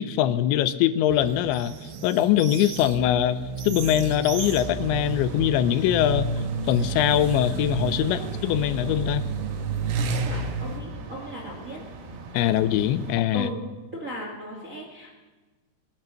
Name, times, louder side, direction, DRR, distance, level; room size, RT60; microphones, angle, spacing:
voice 1, 0.0-1.7 2.0-3.4 3.6-6.3 6.7-9.2 12.3-13.5, left 11 dB, 85° left, 13 dB, 3.0 m, -22 dB
sound 1, 1.1-10.8, right 4 dB, 90° right, 3.6 m, -31 dB
sound 2, 4.2-13.2, right 4 dB, 70° right, 4.3 m, -40 dB
voice 2, 9.9-11.8 13.3-13.6 13.9-15.1, equal, 35° right, -1 dB, 1.2 m, -37 dB
21.5 x 10.5 x 6.3 m, 1.3 s
omnidirectional pair, 5.2 m